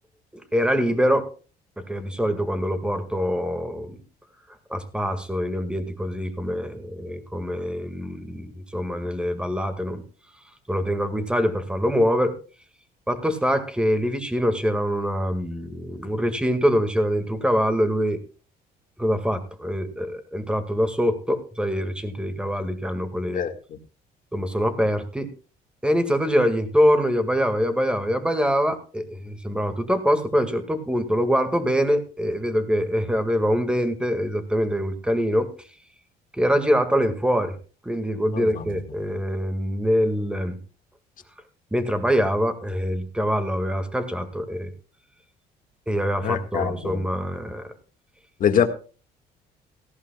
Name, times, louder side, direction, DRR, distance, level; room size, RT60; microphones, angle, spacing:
voice 1, 0.3-1.3 1.8-4.0 4.7-10.0 10.7-12.4 13.1-18.2 19.0-23.5 24.3-25.3 25.8-35.5 36.3-37.6 37.8-40.6 41.7-44.7 45.9-47.7, equal, 5° right, 8 dB, 1.9 m, -24 dB
voice 2, 38.3-38.6 46.2-47.0 48.4-48.7, left 8 dB, 55° left, 7 dB, 1.8 m, -23 dB
18.0 x 14.5 x 2.3 m, 0.36 s
cardioid pair, 110°, 17 cm